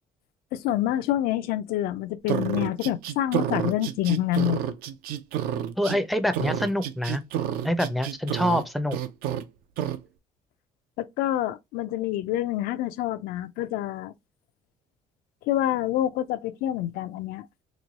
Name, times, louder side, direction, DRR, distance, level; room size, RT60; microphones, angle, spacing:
voice 1, 0.5-4.6 11.0-14.1 15.4-17.5, left 13 dB, 80° left, 0.4 m, -27 dB
sound 1, 2.3-6.0 6.3-8.6 8.9-9.4 9.8-10.0, right 10 dB, 80° right, 0.5 m, -29 dB
voice 2, 5.8-7.2 7.6-9.0, equal, ahead, 0.4 m, -26 dB
3.0 x 2.2 x 3.9 m
cardioid pair, 125°, 15 cm